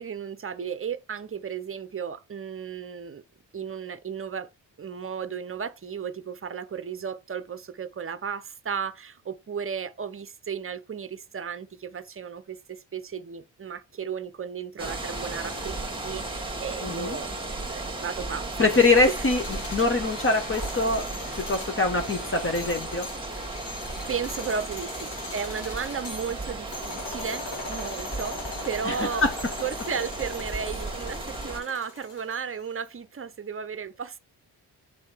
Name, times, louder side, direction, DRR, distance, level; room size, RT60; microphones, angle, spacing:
voice 1, 0.0-3.2 3.5-4.5 4.8-17.4 17.7-18.6 19.1-19.2 21.3-21.5 23.4-23.6 24.1-29.2 29.6-34.2, right 6 dB, 30° right, 0.8 m, -34 dB
sound 1, 14.8-31.6, right 2 dB, 10° right, 1.6 m, -35 dB
voice 2, 16.8-17.2 18.6-19.4 19.7-21.0 21.5-23.1 28.8-28.9 29.2-29.3, left 3 dB, 30° left, 1.1 m, -23 dB
sound 2, 18.5-32.7, left 3 dB, 70° left, 2.0 m, -40 dB
7.5 x 3.6 x 4.5 m
cardioid pair, 75°, 44 cm